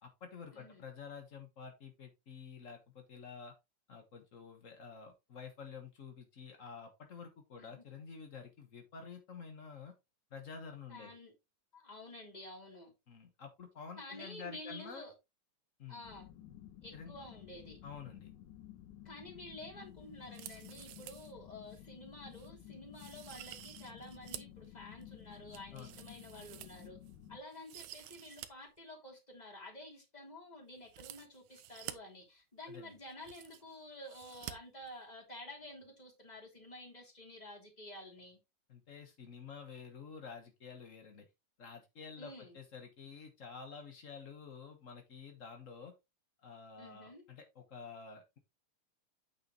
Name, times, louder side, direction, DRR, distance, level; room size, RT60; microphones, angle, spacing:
voice 1, 0.0-3.5 3.9-9.9 10.3-11.1 13.1-15.1 15.8-16.0 16.9-17.2 17.8-18.3 25.7-26.0 32.7-32.9 38.7-41.2 41.6-45.9 46.4-48.4, left 6 dB, 65° left, 0.7 m, -50 dB
voice 2, 0.5-0.8 7.6-7.8 10.9-11.3 11.7-12.9 14.0-15.1 15.9-16.3 16.8-17.8 19.0-27.0 27.3-38.4 42.2-42.6 46.8-47.3, left 1 dB, 15° left, 2.8 m, -51 dB
sound 1, 16.0-27.4, left 12 dB, 85° left, 2.4 m, -54 dB
sound 2, 20.2-21.3 21.7-21.8 22.3-22.5 22.9-24.6 25.0-27.1 27.5-28.5 28.8-28.9 30.8-31.9 32.8-32.9 33.0-33.8 34.1-34.5 34.8-34.9, right 14 dB, 80° right, 2.1 m, -50 dB
8.8 x 6.7 x 3.0 m
omnidirectional pair, 3.5 m